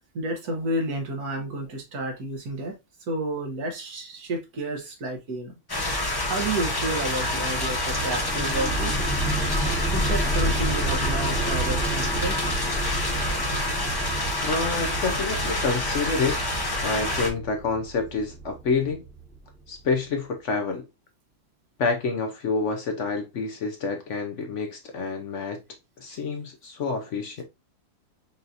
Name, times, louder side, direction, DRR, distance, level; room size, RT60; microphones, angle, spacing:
voice 1, 0.1-2.7 3.1-5.5 6.3-9.1 9.9-12.4 26.1-26.2, right 1 dB, 70° right, 1.7 m, -31 dB
sound 1, 5.7-17.3, left 1 dB, 25° left, 0.5 m, -27 dB
sound 2, 7.9-19.4, right 2 dB, ahead, 1.1 m, -31 dB
voice 2, 14.4-16.4 16.8-19.0 19.7-20.8 21.8-25.6 26.0-27.4, left 4 dB, 60° left, 0.9 m, -28 dB
5.4 x 2.8 x 2.5 m
omnidirectional pair, 1.7 m